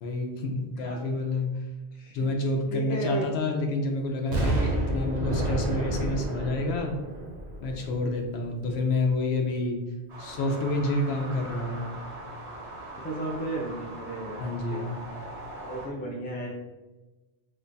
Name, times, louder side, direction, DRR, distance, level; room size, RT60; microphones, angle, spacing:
voice 1, 0.0-1.5 2.1-7.0 7.6-9.8 10.2-11.9 14.4-15.0, left 2 dB, 75° left, 2 dB, 0.8 m, -28 dB
voice 2, 2.7-3.2 13.0-15.0 15.6-16.5, right 1 dB, 15° left, -2 dB, 0.3 m, -34 dB
Explosion, 4.3-8.2 8.7-8.8, right 1 dB, 55° right, 0.8 m, -30 dB
sound 1, 10.1-15.9, right 1 dB, 85° right, 1.3 m, -41 dB
3.1 x 2.2 x 3.8 m, 1.1 s
omnidirectional pair, 1.1 m